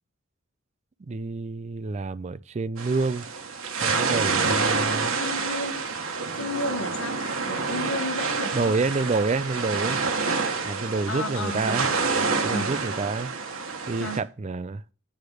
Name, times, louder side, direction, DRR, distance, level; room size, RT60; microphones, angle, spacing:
voice 1, 1.1-3.3 3.8-5.1 8.5-10.0 10.6-11.9 12.4-13.3 13.9-14.8, right 3 dB, 35° right, 0.4 m, -28 dB
sound 1, 2.8-14.2, right 4 dB, 85° right, 1.4 m, -28 dB
voice 2, 5.2-5.9 6.3-8.8 11.1-12.1 12.5-12.7 14.0-14.2, left 2 dB, 75° left, 1.4 m, -33 dB
8.7 x 4.9 x 6.3 m
head